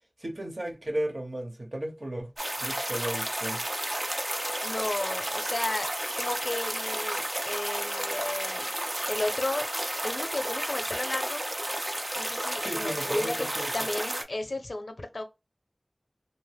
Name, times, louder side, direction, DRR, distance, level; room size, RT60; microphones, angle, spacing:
voice 1, 0.2-2.3 2.6-3.6 12.6-13.9, right 1 dB, 55° right, 1.1 m, -34 dB
sound 1, 2.4-14.2, right 1 dB, 40° right, 0.6 m, -32 dB
voice 2, 4.6-5.9 6.2-8.7 9.0-9.7 10.0-11.4 12.2-13.5 13.7-15.2, left 2 dB, 90° left, 0.6 m, -33 dB
2.9 x 2.1 x 3.3 m
wide cardioid pair, 45°, 0 cm